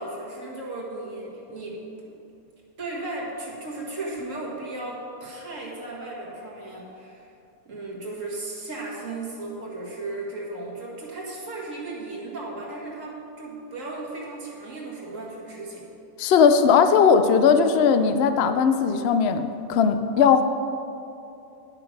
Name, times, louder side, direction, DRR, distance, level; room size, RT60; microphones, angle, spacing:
voice 1, 0.0-2.1 2.8-7.3 7.6-15.9, right 2 dB, 60° right, -4 dB, 2.3 m, -35 dB
voice 2, 16.2-20.4, left 6 dB, 60° left, 9 dB, 0.7 m, -18 dB
11.0 x 6.8 x 5.9 m, 2.7 s
omnidirectional pair, 1.5 m